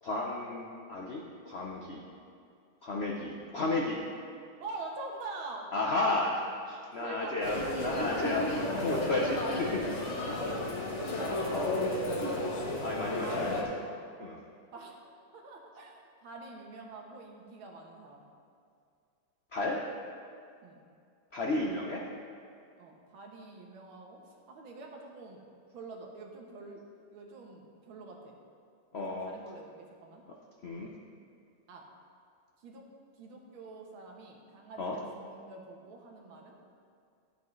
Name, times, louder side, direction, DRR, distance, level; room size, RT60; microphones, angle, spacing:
voice 1, 0.0-2.0 2.8-4.0 5.7-9.8 11.5-11.8 12.8-13.7 14.2-14.4 19.5-19.8 21.3-22.1 28.9-29.3 30.6-30.9 34.8-35.0, left 2 dB, 70° left, -1 dB, 0.6 m, -33 dB
voice 2, 4.6-5.7 7.0-7.4 7.9-8.8 9.2-9.4 9.8-9.9 10.3-11.4 13.2-13.8 14.7-18.3 20.6-20.8 22.8-25.4 25.7-26.8 27.1-28.4 28.9-30.2 31.7-31.9 32.6-32.9 33.2-36.6, right 3 dB, 80° right, 1 dB, 1.9 m, -46 dB
sound 1, 7.4-13.6, left 1 dB, 45° left, 1.2 m, -33 dB
13.0 x 8.3 x 3.2 m, 2.3 s
omnidirectional pair, 2.2 m